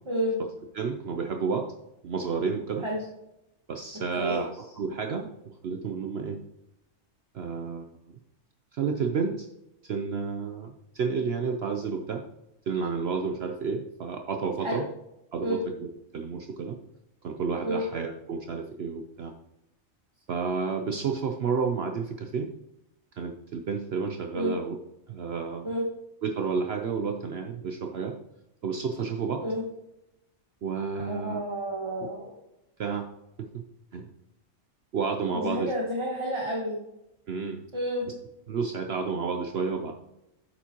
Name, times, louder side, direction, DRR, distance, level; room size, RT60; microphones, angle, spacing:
voice 1, 0.1-0.4 2.8-3.0 4.2-4.4 14.6-14.8 15.4-15.6 17.6-17.8 24.3-24.5 25.6-25.8 29.4-29.6 31.1-32.3 35.3-36.8 37.7-38.0, equal, 25° right, -3 dB, 1.1 m, -30 dB
voice 2, 0.7-1.7 2.0-2.9 3.7-4.5 4.8-5.3 5.6-6.4 7.3-7.8 8.7-9.5 9.9-12.2 12.7-14.8 15.3-16.8 17.2-19.3 20.3-22.5 23.2-24.8 25.1-25.7 26.2-28.1 28.6-29.4 30.6-31.4 32.8-33.1 33.4-33.6 33.9-34.0 34.9-35.7 37.3-37.6 38.5-39.9, right 5 dB, 60° right, 4 dB, 0.8 m, -30 dB
8.8 x 7.0 x 2.9 m, 0.89 s
omnidirectional pair, 1.4 m